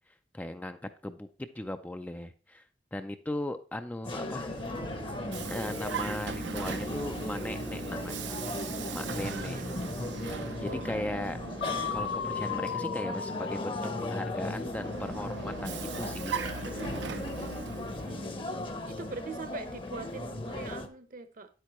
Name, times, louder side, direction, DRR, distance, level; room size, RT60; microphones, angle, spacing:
voice 1, 0.3-0.8 1.0-2.6 2.9-4.5 5.5-9.7 10.1-11.4 11.9-16.4, left 1 dB, 10° left, 8 dB, 0.3 m, -38 dB
sound 1, 4.0-20.9, left 1 dB, 30° left, 0.8 m, -37 dB
Vehicle, 4.2-12.7 14.3-18.2, right 5 dB, 75° right, 0.6 m, -39 dB
voice 2, 9.3-9.9 10.6-11.6 18.0-21.5, right 3 dB, 50° right, 9 dB, 0.8 m, -43 dB
sound 2, 11.6-15.5, left 7 dB, 80° left, 0.4 m, -37 dB
9.4 x 8.1 x 3.0 m, 0.36 s
head